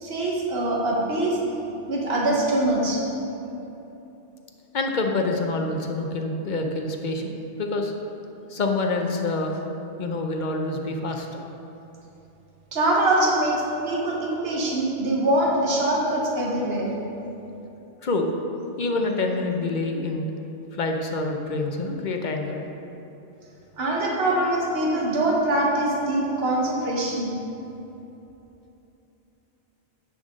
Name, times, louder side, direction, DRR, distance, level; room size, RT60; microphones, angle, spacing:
voice 1, 0.0-1.4 1.9-3.0 12.7-16.9 23.8-27.4, right 1 dB, 60° right, -3 dB, 1.5 m, -23 dB
voice 2, 4.7-7.9 8.5-9.6 10.0-11.4 18.0-18.3 18.8-20.3 20.7-22.6, left 2 dB, 45° left, 3 dB, 0.8 m, -26 dB
10.5 x 7.2 x 3.7 m, 3.0 s
omnidirectional pair, 1.2 m